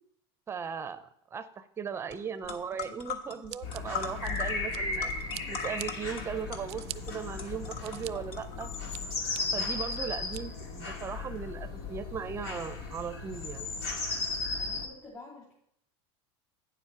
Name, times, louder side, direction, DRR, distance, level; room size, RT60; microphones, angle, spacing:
voice 1, 0.5-5.1 5.5-8.7 9.5-13.7, right 7 dB, 20° right, 12 dB, 0.6 m, -38 dB
sound 1, 2.1-2.2 2.4-9.0, left 7 dB, 45° left, 1.3 m, -41 dB
Scissors, 3.5-5.0 5.3-5.9 6.4-7.0 7.5-8.1 8.6-9.4 9.9-10.4, right 17 dB, 90° right, 0.4 m, -43 dB
sound 2, 3.6-14.9, left 3 dB, 85° left, 1.9 m, -36 dB
voice 2, 4.2-4.5 14.5-15.5, left 2 dB, 30° left, -5 dB, 2.8 m, -50 dB
9.2 x 7.3 x 4.6 m, 0.71 s
supercardioid pair, 140°, 13 cm